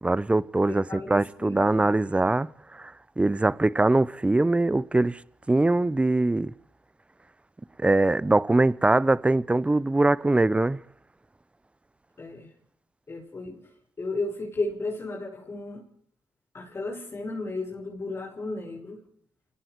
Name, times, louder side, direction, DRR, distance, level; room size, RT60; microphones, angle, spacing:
voice 1, 0.0-2.5 2.8-5.2 5.5-6.5 7.8-10.8, right 2 dB, 15° right, 0.8 m, -22 dB
voice 2, 0.7-1.9 12.2-12.5 13.1-13.6 14.0-15.8 16.5-19.0, left 2 dB, 40° left, 6.1 m, -34 dB
28.5 x 19.5 x 4.6 m
supercardioid pair, 55°, 7 cm